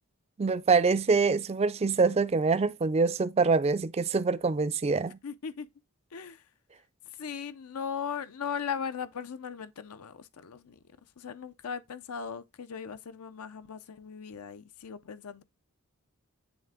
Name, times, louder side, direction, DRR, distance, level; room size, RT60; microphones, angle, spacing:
voice 1, 0.4-5.2, right 4 dB, 30° right, 0.3 m, -25 dB
voice 2, 5.2-5.7 6.1-6.4 7.2-10.8 11.2-15.4, left 7 dB, 80° left, 0.5 m, -38 dB
9.2 x 3.3 x 3.5 m
head